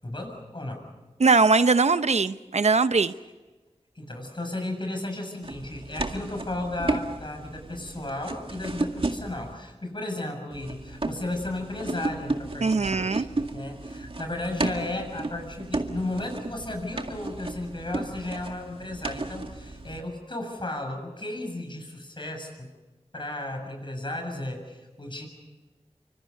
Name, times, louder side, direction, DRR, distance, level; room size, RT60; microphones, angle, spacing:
voice 1, 0.0-0.9 4.0-22.7 23.1-25.3, left 1 dB, 45° left, 3 dB, 7.0 m, -34 dB
voice 2, 1.2-3.1 12.6-13.3, right 4 dB, 80° right, 12 dB, 0.7 m, -21 dB
sound 1, 5.4-9.5 10.5-20.0, right 2 dB, 55° right, 2.0 m, -33 dB
27.5 x 25.5 x 5.4 m, 1.2 s
wide cardioid pair, 55°, 11 cm